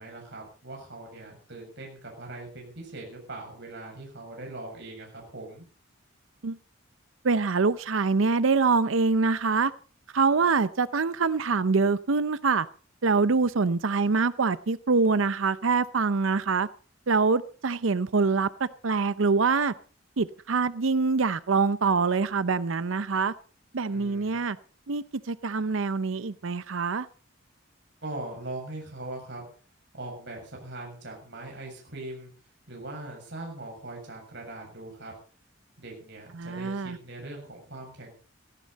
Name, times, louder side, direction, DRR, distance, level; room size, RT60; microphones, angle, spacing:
voice 1, 0.0-5.7 23.9-24.4 28.0-29.5 29.9-32.3 32.7-35.1 35.8-38.1, right 2 dB, 60° right, 7.0 m, -41 dB
voice 2, 7.2-9.7 10.1-12.7 13.0-16.7 17.1-19.7 20.2-23.3 23.7-24.6 24.9-27.1 36.3-37.0, right 4 dB, 80° right, 0.7 m, -25 dB
17.0 x 15.5 x 4.1 m
head